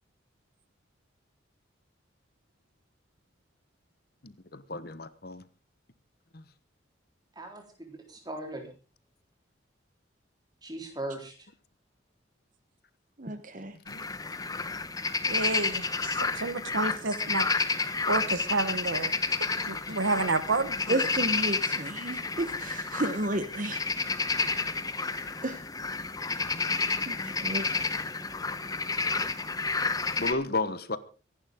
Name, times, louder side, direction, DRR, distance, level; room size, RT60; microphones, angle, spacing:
voice 1, 4.2-5.4 6.3-6.4 13.9-14.0 19.9-20.0 26.5-26.6 30.2-31.0, left 3 dB, 50° left, 14 dB, 1.1 m, -33 dB
voice 2, 7.4-8.7 10.6-11.5, right 1 dB, 20° right, 3 dB, 3.8 m, -39 dB
voice 3, 13.2-13.7 20.9-23.8 25.0-25.6 27.1-27.9, right 1 dB, 40° right, 9 dB, 1.1 m, -33 dB
sound 1, 13.9-30.3, left 4 dB, 20° left, 0.9 m, -30 dB
voice 4, 15.2-17.5 18.1-19.1 19.7-21.1, right 3 dB, 75° right, 13 dB, 1.3 m, -30 dB
24.5 x 11.5 x 3.7 m, 0.34 s
head